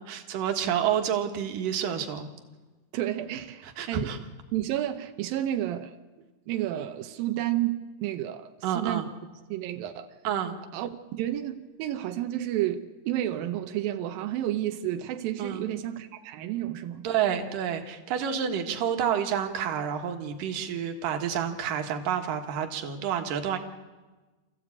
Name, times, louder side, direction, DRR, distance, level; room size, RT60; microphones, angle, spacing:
voice 1, 0.0-2.3 3.6-4.2 8.6-9.1 10.2-10.6 15.4-15.7 17.0-23.6, right 8 dB, 60° right, 2.6 m, -29 dB
voice 2, 2.9-4.1 4.5-5.9 6.5-9.0 9.5-10.1 10.7-17.1, right 13 dB, 85° right, 2.0 m, -31 dB
27.0 x 15.0 x 8.5 m
omnidirectional pair, 5.3 m